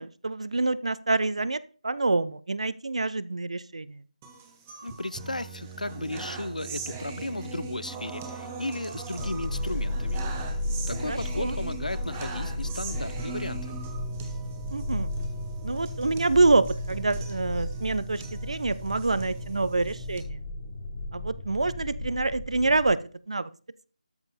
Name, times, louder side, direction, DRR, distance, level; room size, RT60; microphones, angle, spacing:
voice 1, 0.0-4.0 11.1-11.6 14.7-15.1 15.6-20.4 21.1-23.0 23.3-23.5, right 3 dB, 55° right, 0.6 m, -26 dB
sound 1, 4.2-20.2, right 4 dB, 15° right, 0.9 m, -40 dB
voice 2, 4.8-10.2 10.9-13.7, left 2 dB, 75° left, 0.6 m, -35 dB
sound 2, 9.2-22.9, left 1 dB, 25° left, 1.2 m, -34 dB
13.0 x 5.3 x 4.2 m
figure-of-eight pair, 160°, 4 cm